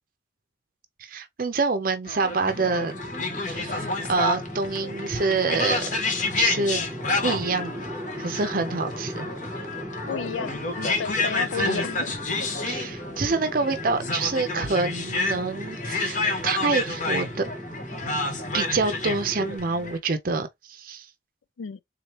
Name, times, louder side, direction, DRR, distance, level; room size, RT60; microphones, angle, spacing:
voice 1, 1.0-3.0 3.5-5.8 6.4-6.8 7.2-7.7 8.2-9.3 11.6-11.8 12.7-17.5 18.5-21.1, right 4 dB, 45° right, 0.6 m, -26 dB
sound 1, 2.0-20.0, left 3 dB, 40° left, 0.8 m, -30 dB
sound 2, 2.5-19.6, equal, 10° right, 0.8 m, -38 dB
voice 2, 10.1-12.2 21.6-21.8, left 6 dB, 85° left, 0.4 m, -32 dB
3.7 x 3.1 x 2.9 m
head